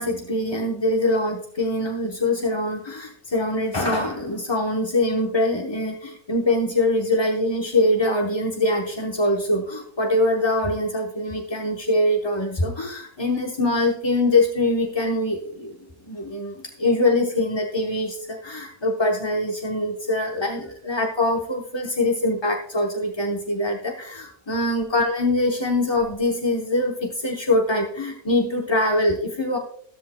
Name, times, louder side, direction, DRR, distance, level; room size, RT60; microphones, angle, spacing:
voice 1, 0.0-15.8 16.0-29.6, left 1 dB, 20° left, 0 dB, 0.8 m, -23 dB
13.5 x 13.5 x 2.2 m, 0.66 s
omnidirectional pair, 1.5 m